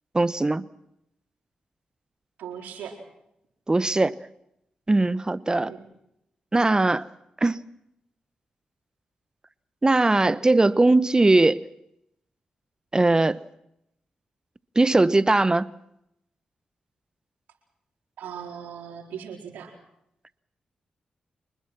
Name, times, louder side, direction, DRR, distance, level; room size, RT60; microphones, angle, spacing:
voice 1, 0.1-0.6 3.7-4.2 4.9-5.7 6.5-7.0 7.4-7.6 9.8-11.6 12.9-13.4 14.8-15.7, right 2 dB, 25° right, 0.9 m, -20 dB
voice 2, 2.4-3.0 5.6-5.8 18.2-19.7, right 8 dB, 85° right, 4.3 m, -38 dB
25.5 x 20.5 x 6.1 m
supercardioid pair, 45°, 3 cm